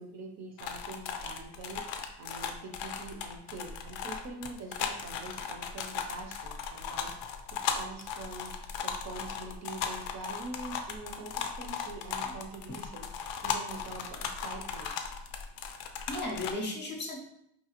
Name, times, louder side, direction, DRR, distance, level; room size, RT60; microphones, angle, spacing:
voice 1, 0.0-1.8 2.2-7.1 7.5-8.5 8.8-13.1 13.4-15.1, right 3 dB, 40° right, 2 dB, 0.5 m, -44 dB
sound 1, 0.6-16.5, left 7 dB, 90° left, 0.6 m, -37 dB
voice 2, 15.8-17.2, left 2 dB, 25° left, 0 dB, 0.5 m, -36 dB
4.8 x 2.7 x 2.8 m, 0.76 s
cardioid pair, 165°, 43 cm